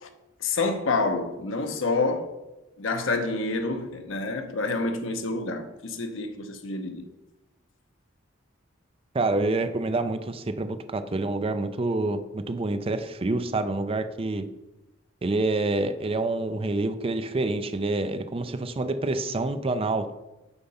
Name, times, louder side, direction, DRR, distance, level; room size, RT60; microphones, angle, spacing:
voice 1, 0.4-2.3 2.8-7.1, left 3 dB, 75° left, 0.9 m, -28 dB
voice 2, 9.1-14.5 15.2-20.2, right 2 dB, 30° right, 0.4 m, -27 dB
6.9 x 5.6 x 5.5 m
head